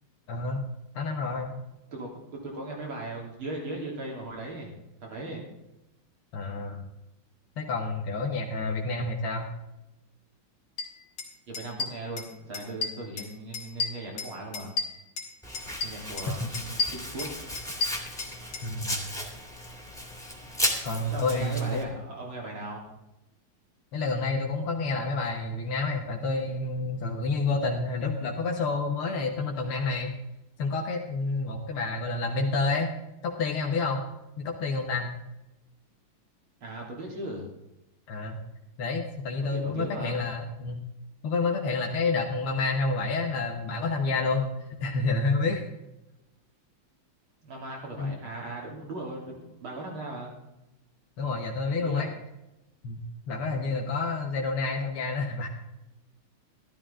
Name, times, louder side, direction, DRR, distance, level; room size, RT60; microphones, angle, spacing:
voice 1, 0.3-0.6 0.9-1.5 6.3-6.8 7.6-9.5 16.3-16.5 18.6-19.0 20.8-21.8 23.9-30.1 30.6-32.9 33.2-34.1 34.4-35.1 38.1-38.4 38.8-40.8 41.2-44.5 44.8-45.6 48.0-48.1 51.2-52.1 52.8-55.5, left 3 dB, 85° left, 0 dB, 2.2 m, -29 dB
voice 2, 2.4-4.7 5.0-5.4 8.5-8.7 11.5-14.7 15.8-17.3 21.1-22.9 36.6-37.5 39.5-40.2 47.4-50.3 51.8-52.1 53.4-53.6, right 2 dB, 75° right, -1 dB, 4.2 m, -38 dB
sound 1, 10.8-10.9 11.2-11.3 11.5-12.3 12.5-13.3 13.5-15.3 15.5-16.3 16.5-18.7, left 4 dB, 65° left, 2.7 m, -32 dB
Domestic sounds home sounds, 15.4-21.8, left 1 dB, ahead, 2.1 m, -35 dB
13.0 x 13.0 x 3.7 m, 0.93 s
omnidirectional pair, 2.3 m